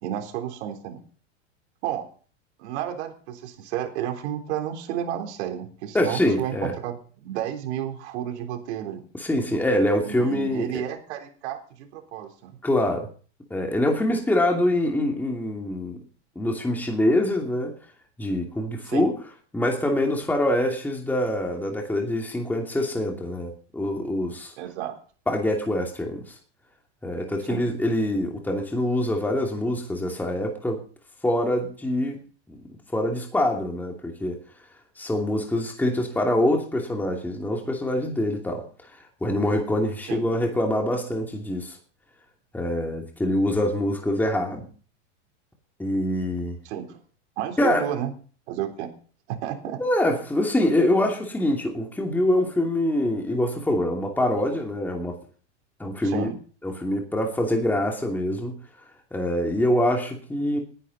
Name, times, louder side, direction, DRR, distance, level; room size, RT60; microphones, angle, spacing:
voice 1, 0.0-1.0 1.8-2.1 2.6-7.0 7.2-9.0 10.0-12.5 18.9-19.1 24.6-25.0 27.5-27.7 40.0-40.2 46.7-47.0 47.4-48.1 48.5-48.9 49.3-49.8 56.0-56.4, right 10 dB, 65° right, 5 dB, 3.7 m, -31 dB
voice 2, 5.9-6.7 9.2-10.7 12.6-13.1 13.5-16.0 16.4-17.7 18.2-19.2 19.5-24.5 25.3-26.3 27.0-30.8 31.2-32.2 32.5-32.6 32.9-34.4 35.0-38.9 39.2-41.8 42.5-44.7 45.8-46.5 47.6-47.8 49.8-55.1 55.8-56.3 56.6-58.6 59.1-60.6, left 1 dB, 5° left, 1 dB, 2.6 m, -25 dB
19.5 x 11.0 x 4.1 m, 0.42 s
supercardioid pair, 140°, 36 cm